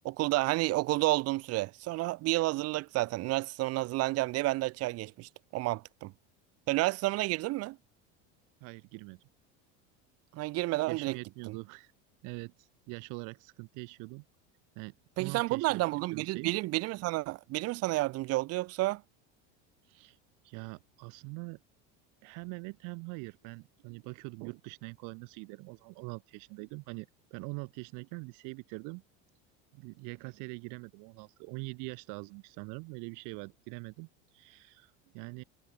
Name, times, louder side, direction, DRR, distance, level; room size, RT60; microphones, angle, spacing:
voice 1, 0.0-6.1 6.7-7.8 10.3-11.2 11.5-11.6 15.2-19.0, right 19 dB, 45° right, 0.7 m, -30 dB
voice 2, 8.6-9.2 10.9-11.9 12.2-14.2 14.7-15.8 16.1-16.5 19.8-20.2 20.4-21.6 22.2-29.0 29.7-35.4, right 31 dB, 70° right, 3.0 m, -43 dB
supercardioid pair, 120°, 33 cm